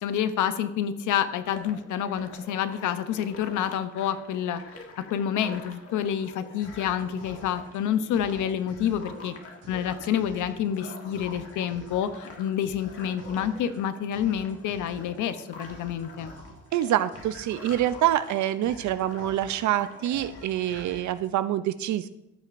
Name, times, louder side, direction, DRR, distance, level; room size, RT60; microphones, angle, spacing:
voice 1, 0.0-4.6 5.1-9.3 9.7-16.3, left 9 dB, 80° left, 11 dB, 0.7 m, -28 dB
sound 1, 1.4-21.1, left 3 dB, 50° left, 1.7 m, -46 dB
sound 2, 6.0-21.4, right 2 dB, 55° right, 2.0 m, -51 dB
voice 2, 16.7-22.1, right 12 dB, 70° right, 13 dB, 0.5 m, -26 dB
14.5 x 6.4 x 2.5 m, 0.86 s
cardioid pair, 90°, 30 cm